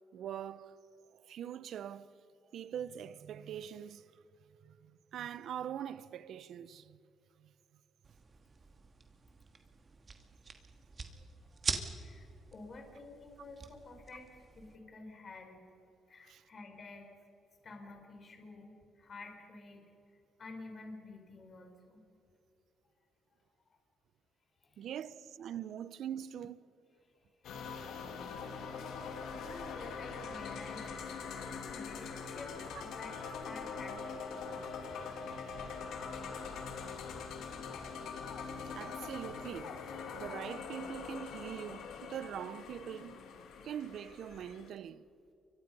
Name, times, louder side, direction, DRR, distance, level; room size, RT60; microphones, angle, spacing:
voice 1, 0.1-0.8 1.1-2.1 2.5-4.0 4.6-7.0 7.4-7.5 16.2-16.4 24.8-26.6 31.3-31.4 38.7-39.8 40.1-43.2 43.6-45.0, right 9 dB, 70° right, 0.8 m, -43 dB
sound 1, 8.0-14.8, right 4 dB, 40° right, 2.4 m, -44 dB
voice 2, 12.0-15.7 16.1-17.1 17.6-19.9 20.4-22.0 24.6-24.9 27.2-27.3 27.7-28.5 28.9-31.1 31.7-33.2 33.4-34.7, left 3 dB, 45° left, 4.7 m, -51 dB
sound 2, 27.4-44.7, left 5 dB, 80° left, 2.8 m, -43 dB
29.0 x 24.5 x 5.5 m
cardioid pair, 90°, 0 cm